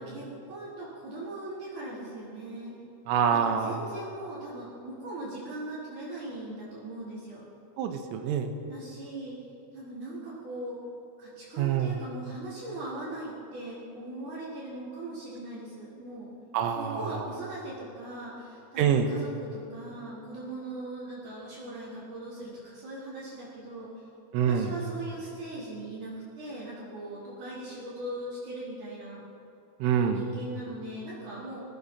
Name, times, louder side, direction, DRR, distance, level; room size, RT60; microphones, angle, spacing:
voice 1, 0.0-2.7 3.3-7.5 8.7-9.4 9.7-10.8 11.2-16.3 16.8-23.9 24.4-29.2 30.1-31.6, right 2 dB, 40° right, -10 dB, 5.4 m, -40 dB
voice 2, 3.1-3.7 7.8-8.5 11.6-12.0 16.5-17.2 18.8-19.1 24.3-24.7 29.8-30.2, right 8 dB, 85° right, 6 dB, 3.8 m, -26 dB
26.0 x 17.5 x 5.8 m, 2.8 s
omnidirectional pair, 5.7 m